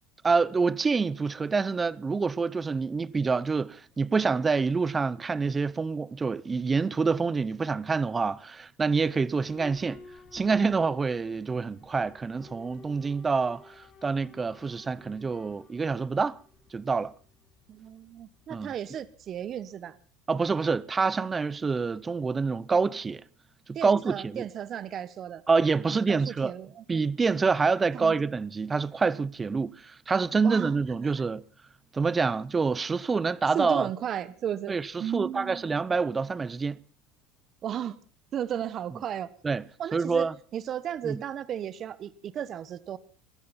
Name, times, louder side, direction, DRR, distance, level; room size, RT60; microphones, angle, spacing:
voice 1, 0.2-10.0 10.3-16.4 16.7-17.1 18.5-18.7 20.3-23.2 23.7-24.4 25.5-26.5 26.9-31.4 31.9-33.9 34.7-36.8 39.4-39.6 39.9-40.3 41.0-41.2, right 4 dB, 20° right, 0.7 m, -27 dB
Boat Water vehicle / Alarm, 9.4-20.1, left 3 dB, 40° left, 6.7 m, -54 dB
voice 2, 17.7-20.0 23.7-25.4 25.9-26.8 27.9-28.1 30.4-30.8 31.0-31.1 33.5-35.6 37.6-38.0 38.3-39.3 39.8-43.0, right 9 dB, 40° right, 1.0 m, -34 dB
22.0 x 13.5 x 4.2 m
supercardioid pair, 110°, 0 cm